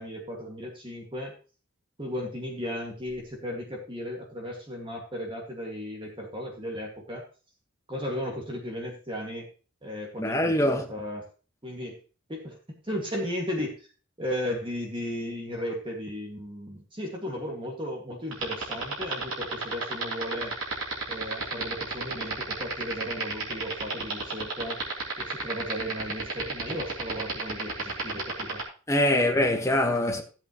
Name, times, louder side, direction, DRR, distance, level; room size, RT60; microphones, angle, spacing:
voice 1, 0.0-1.3 2.0-7.2 7.9-9.5 9.8-11.3 11.6-12.0 12.3-12.6 12.8-13.9 14.2-20.5 21.1-24.8 25.2-28.6 29.1-29.3, equal, 25° right, 2.1 m, -35 dB
voice 2, 10.2-10.9 28.9-30.2, left 1 dB, 15° left, 1.5 m, -23 dB
sound 1, 18.3-28.6, right 5 dB, 70° right, 3.4 m, -31 dB
14.0 x 8.0 x 3.1 m
head